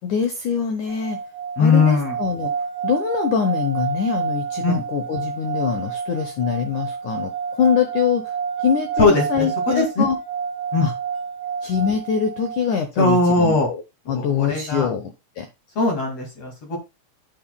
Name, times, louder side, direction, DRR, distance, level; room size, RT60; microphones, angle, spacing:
voice 1, 0.0-1.2 1.6-2.5 2.8-8.3 8.6-10.2 10.8-10.9 11.6-13.8 14.1-15.1 15.4-15.5, left 7 dB, 80° left, 6 dB, 1.8 m, -23 dB
sound 1, 0.9-12.8, right 6 dB, 40° right, 3.0 m, -29 dB
voice 2, 1.6-2.2 4.6-4.7 9.0-10.0 10.7-10.9 13.0-13.7 14.1-14.9 15.8-16.8, left 3 dB, 45° left, 2 dB, 2.8 m, -19 dB
9.4 x 8.9 x 2.3 m, 0.24 s
omnidirectional pair, 4.9 m